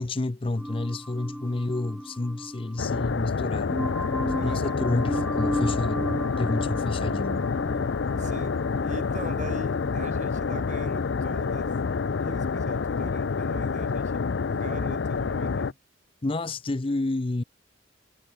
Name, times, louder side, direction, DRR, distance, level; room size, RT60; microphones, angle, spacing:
voice 1, 0.0-3.8 4.3-7.5 16.2-17.4, left 2 dB, 30° left, 0.6 m, -29 dB
sound 1, 0.6-12.8, equal, ahead, 0.9 m, -36 dB
sound 2, 2.8-15.7, left 5 dB, 85° left, 0.5 m, -28 dB
voice 2, 4.3-4.8 8.2-11.8 12.2-15.8, right 1 dB, 40° right, 2.9 m, -41 dB
head